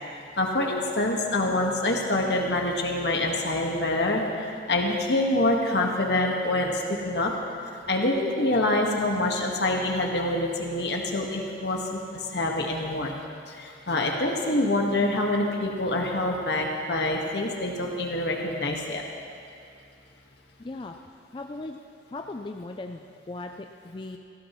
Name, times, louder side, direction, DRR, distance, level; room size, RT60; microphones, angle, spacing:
voice 1, 0.4-7.3 7.9-13.1 13.5-19.0, left 2 dB, 65° left, 0 dB, 1.6 m, -26 dB
voice 2, 20.6-21.0 21.3-21.8 22.1-24.2, left 2 dB, 25° left, 4 dB, 0.4 m, -38 dB
19.0 x 15.0 x 3.1 m, 2.4 s
head